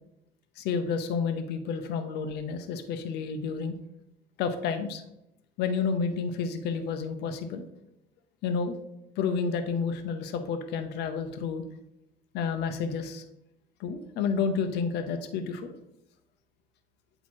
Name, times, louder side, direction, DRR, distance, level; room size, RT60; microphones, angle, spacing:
voice 1, 0.6-3.7 4.4-5.0 5.6-7.7 8.4-8.8 9.2-11.6 12.3-13.2 13.8-15.7, left 5 dB, 80° left, 7 dB, 0.7 m, -30 dB
8.4 x 3.0 x 4.5 m, 0.83 s
cardioid pair, 110°, 17 cm